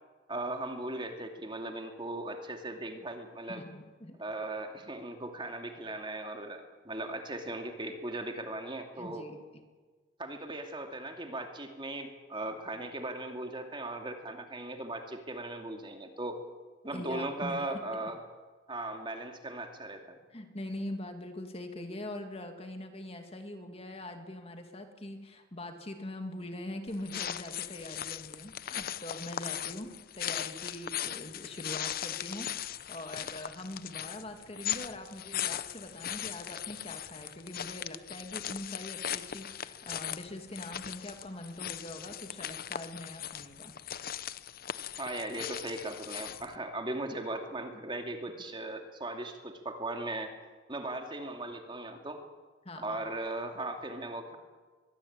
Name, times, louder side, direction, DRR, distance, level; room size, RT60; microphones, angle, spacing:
voice 1, 0.3-3.6 4.2-9.3 10.2-16.4 16.8-18.2 18.7-20.2 45.0-50.3 50.7-52.2 52.8-54.4, right 2 dB, 25° right, 4 dB, 2.5 m, -38 dB
voice 2, 3.5-4.2 9.0-9.4 16.9-18.1 20.3-43.7 52.6-53.0, left 1 dB, 30° left, 6 dB, 2.3 m, -43 dB
sound 1, 26.9-46.6, left 10 dB, 50° left, 0.8 m, -39 dB
23.0 x 22.0 x 8.8 m, 1.4 s
head